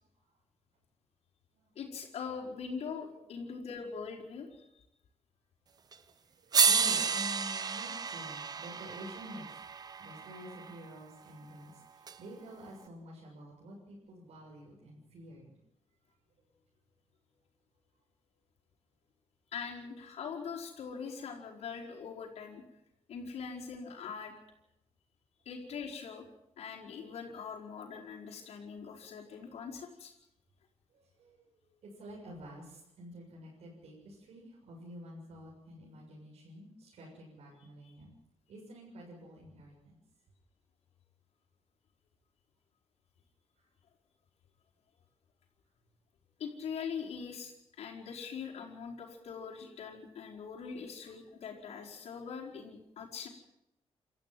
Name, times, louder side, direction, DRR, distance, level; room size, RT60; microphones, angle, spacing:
voice 1, 1.7-4.7 19.5-22.6 23.1-24.3 25.4-26.3 26.6-30.1 46.4-53.3, left 6 dB, 85° left, -3 dB, 4.8 m, -42 dB
sound 1, 5.9-6.0 6.5-10.7 12.1-12.2, right 6 dB, 40° right, 1.0 m, -31 dB
voice 2, 6.2-9.7 10.0-15.5 30.9-38.1 38.5-40.0 43.6-43.7, right 1 dB, 75° right, -3 dB, 7.0 m, -49 dB
28.5 x 14.0 x 7.7 m, 0.88 s
wide cardioid pair, 170°, 11 cm